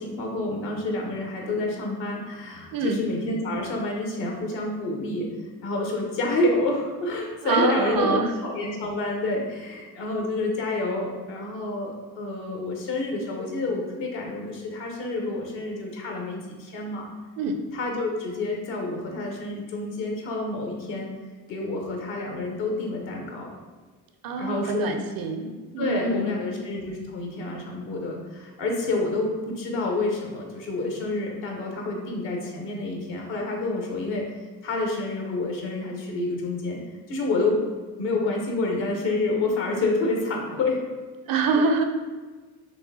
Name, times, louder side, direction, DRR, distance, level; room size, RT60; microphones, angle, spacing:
voice 1, 0.0-5.3 5.6-17.1 17.7-21.1 21.5-23.5 24.4-24.9 25.8-34.3 34.6-36.8 37.1-37.6 38.0-40.8, left 2 dB, 65° left, 1 dB, 1.1 m, -28 dB
voice 2, 2.7-3.1 7.4-8.3 17.4-17.6 24.2-26.6 41.2-41.8, right 3 dB, 45° right, 6 dB, 0.5 m, -26 dB
4.6 x 3.3 x 2.7 m, 1.4 s
hypercardioid pair, 50°, 49 cm